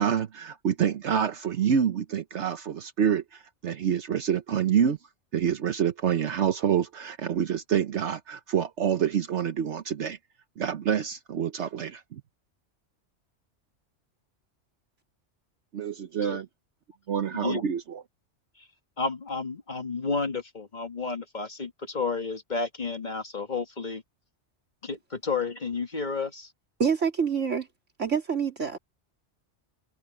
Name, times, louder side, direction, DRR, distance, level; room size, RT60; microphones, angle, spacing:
voice 1, 0.0-5.0 5.3-10.2 10.6-12.2 15.7-16.5 17.1-18.0, right 8 dB, 70° right, 1.2 m, -27 dB
voice 2, 17.3-17.6 18.6-18.7 19.0-24.0 24.8-26.5, left 4 dB, 40° left, 1.8 m, -31 dB
voice 3, 26.8-27.7 28.0-28.8, right 6 dB, 90° right, 3.3 m, -26 dB
omnidirectional pair, 1.2 m